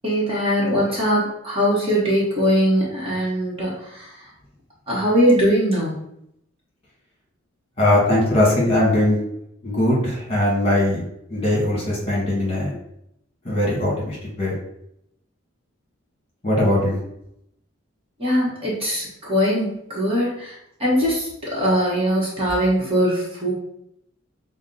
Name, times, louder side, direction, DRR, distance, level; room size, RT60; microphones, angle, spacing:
voice 1, 0.0-4.1 4.9-5.9 18.2-20.5 20.8-23.5, equal, 25° right, -6 dB, 1.1 m, -21 dB
voice 2, 7.8-9.2 9.6-11.0 11.3-12.7 13.4-14.6 16.4-17.0, left 1 dB, 25° left, -5 dB, 1.6 m, -20 dB
6.1 x 2.1 x 3.9 m, 0.77 s
head